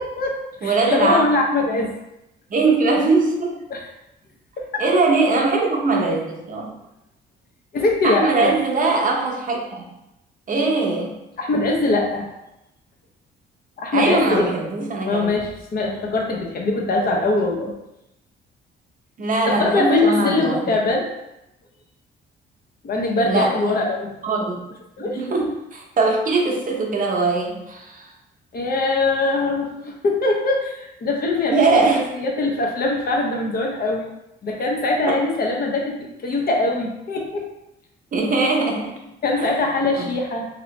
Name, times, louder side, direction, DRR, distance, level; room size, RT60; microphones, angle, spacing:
voice 1, 0.0-1.9 3.7-3.9 4.6-4.8 7.7-8.5 11.4-12.3 13.8-14.5 15.1-17.7 19.5-21.1 22.8-24.1 25.0-25.2 28.5-34.1 34.4-37.4 39.2-40.5, left 2 dB, 50° left, 0 dB, 0.7 m, -22 dB
voice 2, 0.6-1.2 2.5-3.5 4.8-6.7 8.0-9.8 10.5-11.2 13.9-15.3 19.2-20.8 23.2-23.9 24.2-24.6 25.0-28.1 31.5-32.0 35.1-35.2 38.1-38.9 39.4-39.5 40.0-40.1, right 3 dB, 40° right, 0 dB, 0.7 m, -21 dB
2.8 x 2.7 x 3.1 m, 0.89 s
cardioid pair, 90°, 20 cm